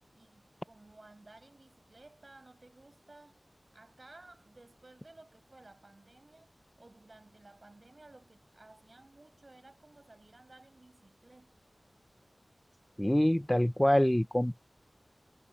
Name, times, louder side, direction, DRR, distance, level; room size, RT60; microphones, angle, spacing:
voice 1, 0.1-3.4 3.7-11.6, right 2 dB, 45° right, 6.0 m, -57 dB
voice 2, 13.0-14.6, equal, 10° left, 0.6 m, -25 dB
wide cardioid pair, 65°, 0 cm